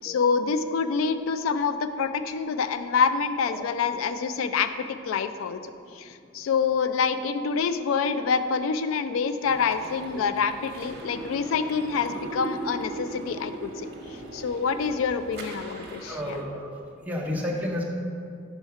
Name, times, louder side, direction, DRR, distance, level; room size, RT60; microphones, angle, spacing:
voice 1, 0.0-5.6 6.0-13.9 14.3-16.4, left 5 dB, 90° left, 10 dB, 0.3 m, -26 dB
sound 1, 9.4-16.4, right 2 dB, 55° right, 0.9 m, -39 dB
voice 2, 16.1-16.7 17.1-17.8, left 1 dB, 10° right, -2 dB, 0.7 m, -31 dB
5.6 x 4.2 x 5.7 m, 2.3 s
head